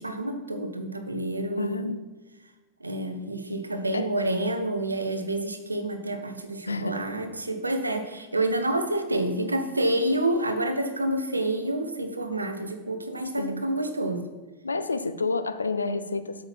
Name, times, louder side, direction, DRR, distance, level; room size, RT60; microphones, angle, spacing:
voice 1, 0.0-1.9 2.8-14.3, right 1 dB, 80° right, 7 dB, 0.9 m, -28 dB
voice 2, 1.6-2.0 3.9-4.1 6.7-7.0 13.4-13.7 14.6-16.4, left 3 dB, 80° left, 11 dB, 0.5 m, -29 dB
7.9 x 5.7 x 5.8 m, 1.2 s
figure-of-eight pair, 90°, 0 cm